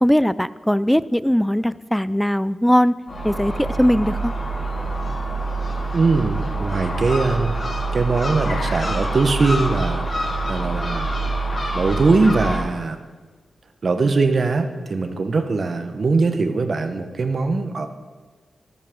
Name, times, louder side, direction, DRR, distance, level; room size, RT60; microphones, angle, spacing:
voice 1, 0.0-2.9 3.2-4.3, equal, 5° left, 17 dB, 0.4 m, -19 dB
Gull seagull, 3.1-12.6, right 2 dB, 55° left, 4.4 m, -26 dB
Car, 3.5-13.4, left 4 dB, 75° left, 1.4 m, -43 dB
voice 2, 5.9-7.5 7.9-11.1 11.7-13.0 13.8-17.9, right 3 dB, 60° right, 7 dB, 1.1 m, -21 dB
13.5 x 13.5 x 3.8 m, 1.4 s
cardioid pair, 55°, 0 cm